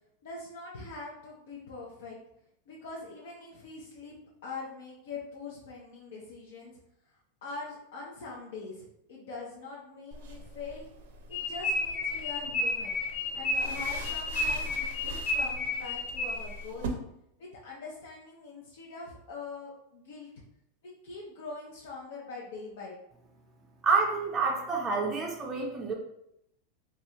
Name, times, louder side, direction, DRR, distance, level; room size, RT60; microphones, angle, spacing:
voice 1, 0.2-2.2 2.7-6.8 7.4-10.9 11.3-13.0 13.3-17.0 17.4-20.3 20.8-23.0, left 4 dB, 70° left, -3 dB, 0.6 m, -43 dB
sound 1, 10.1-16.9, right 2 dB, 75° right, 0.5 m, -43 dB
sound 2, 11.3-16.6, left 2 dB, 45° left, 1.0 m, -31 dB
voice 2, 23.8-25.9, right 4 dB, 15° right, -1 dB, 0.4 m, -28 dB
3.1 x 2.4 x 2.7 m, 0.79 s
supercardioid pair, 150°, 0 cm